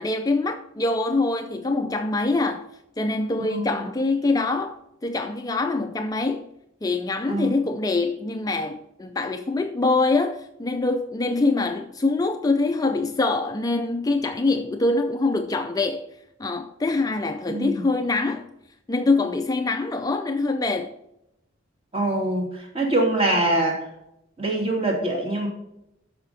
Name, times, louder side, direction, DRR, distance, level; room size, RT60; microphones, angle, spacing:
voice 1, 0.0-2.7 3.0-6.5 6.8-16.1 16.4-18.5 18.9-20.9, left 3 dB, 20° left, 0.4 m, -24 dB
voice 2, 3.4-3.9 7.3-7.5 17.5-17.8 21.9-23.8 24.4-25.5, right 1 dB, 30° right, 2.9 m, -24 dB
12.5 x 5.1 x 4.1 m
head